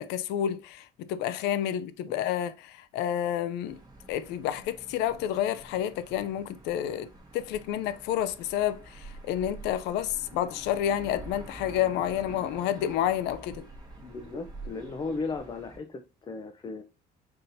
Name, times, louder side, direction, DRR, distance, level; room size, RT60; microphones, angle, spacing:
voice 1, 0.0-3.8 4.1-7.1 7.3-13.6, left 10 dB, 90° left, 0.4 m, -29 dB
sound 1, 3.7-15.8, right 2 dB, 25° right, 1.1 m, -47 dB
voice 2, 14.0-16.8, left 4 dB, 25° left, 0.5 m, -36 dB
5.5 x 2.8 x 2.6 m
cardioid pair, 110°, 17 cm